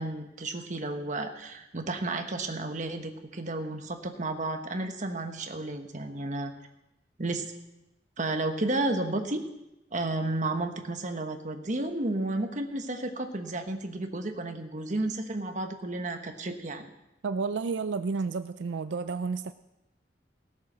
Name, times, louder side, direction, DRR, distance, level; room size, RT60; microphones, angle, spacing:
voice 1, 0.0-6.5 7.2-7.5 8.2-9.4 9.9-16.9, right 2 dB, 45° right, 5 dB, 1.3 m, -32 dB
voice 2, 17.2-19.5, right 4 dB, 80° right, 11 dB, 0.4 m, -31 dB
17.0 x 8.6 x 6.2 m, 0.92 s
head